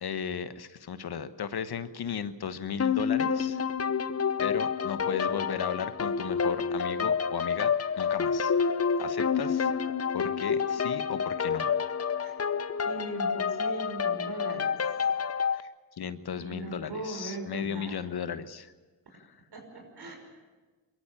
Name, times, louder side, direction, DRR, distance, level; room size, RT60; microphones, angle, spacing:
voice 1, 0.0-3.6 4.4-8.5 9.0-9.7 10.1-11.7 15.5-15.7 16.0-18.7 19.1-19.4, left 7 dB, 65° left, 12 dB, 1.2 m, -35 dB
sound 1, 2.8-15.6, left 6 dB, 35° left, 0.9 m, -28 dB
voice 2, 12.8-14.8 16.4-18.0 19.5-20.2, right 3 dB, 65° right, 3 dB, 5.7 m, -39 dB
22.5 x 14.0 x 8.9 m, 1.3 s
supercardioid pair, 45°, 42 cm